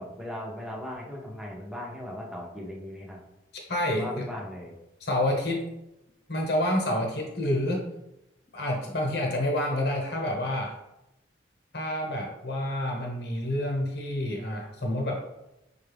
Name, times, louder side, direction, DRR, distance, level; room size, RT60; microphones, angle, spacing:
voice 1, 0.0-3.2 3.9-4.7, left 1 dB, 5° right, -2 dB, 0.7 m, -38 dB
voice 2, 3.5-4.3 5.0-5.7 6.3-7.8 8.5-10.8 11.7-15.3, left 1 dB, 60° left, 0 dB, 1.0 m, -28 dB
5.4 x 2.4 x 3.4 m, 0.90 s
head